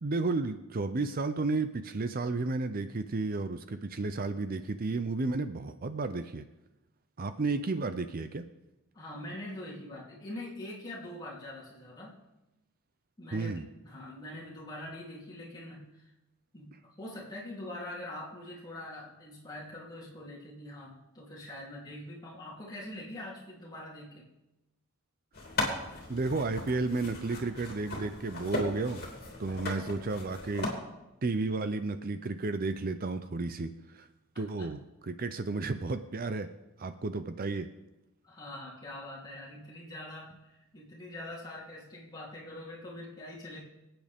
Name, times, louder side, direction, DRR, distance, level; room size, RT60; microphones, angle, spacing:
voice 1, 0.0-6.4 7.2-8.4 13.3-13.6 26.1-29.0 29.4-30.7 31.2-34.1 34.4-36.5 36.8-37.7, right 3 dB, 45° right, 10 dB, 0.6 m, -32 dB
voice 2, 8.9-12.2 13.2-16.0 16.5-16.7 17.0-24.3 29.5-29.9 34.3-34.7 38.2-43.6, left 1 dB, 20° left, -6 dB, 3.2 m, -44 dB
sound 1, 25.3-30.7, left 2 dB, 45° left, 3.0 m, -37 dB
25.5 x 8.9 x 3.6 m, 0.99 s
head